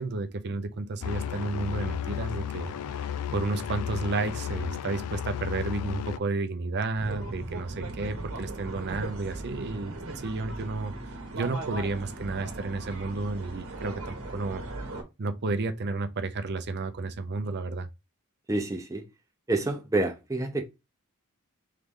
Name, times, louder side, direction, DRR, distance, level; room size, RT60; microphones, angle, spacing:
voice 1, 0.0-2.7 3.3-10.9 11.3-14.6 15.2-17.9, right 3 dB, 50° right, 0.5 m, -32 dB
sound 1, 1.0-6.2, left 9 dB, 85° left, 0.4 m, -33 dB
sound 2, 7.0-15.0, right 2 dB, 65° right, 1.1 m, -38 dB
voice 2, 18.5-19.1 19.5-20.6, right 2 dB, 15° right, 0.7 m, -28 dB
3.7 x 3.3 x 3.6 m
head